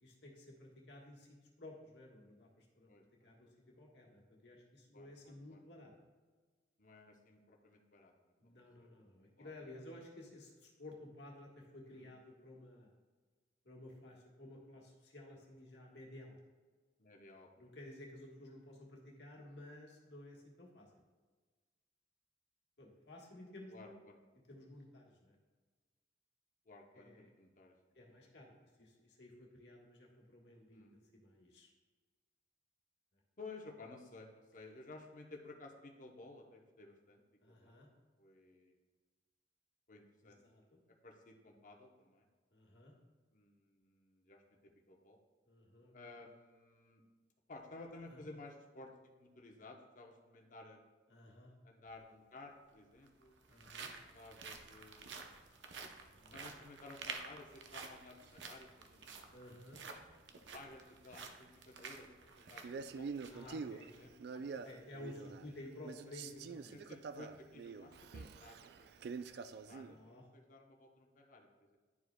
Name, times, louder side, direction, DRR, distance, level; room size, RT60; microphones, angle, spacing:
voice 1, 0.0-2.9 3.2-3.5 3.8-5.9 8.4-12.9 13.6-16.4 17.6-20.9 22.8-24.0 24.5-25.3 26.9-27.3 27.9-28.5 28.8-31.7 37.4-37.9 40.2-40.8 42.5-42.9 45.5-45.9 48.1-48.2 51.1-51.5 53.5-53.9 56.2-56.5 59.3-59.8 63.3-63.9 64.3-66.8 69.7-70.2, left 1 dB, 70° left, -2 dB, 1.4 m, -54 dB
voice 2, 2.9-3.5 4.9-5.6 6.8-8.9 9.4-9.6 12.0-12.1 17.0-17.8 23.7-24.2 26.7-27.7 30.7-31.0 33.4-37.7 38.2-38.7 39.9-40.4 41.0-42.3 43.3-45.2 45.9-47.0 47.5-48.9 49.2-50.8 51.6-53.3 54.1-55.6 56.3-59.4 60.5-64.1 65.2-65.3 66.7-68.9 69.2-69.3 69.7-70.0 70.3-71.8, left 2 dB, 45° left, 2 dB, 0.8 m, -55 dB
sound 1, 51.9-52.0 52.9-63.5 63.9-64.0 64.5-64.7, right 5 dB, 85° right, 0.7 m, -51 dB
Male speech man speaking, 62.6-65.6 65.8-70.0, right 5 dB, 60° right, 0.3 m, -46 dB
10.5 x 4.8 x 2.2 m, 1.4 s
head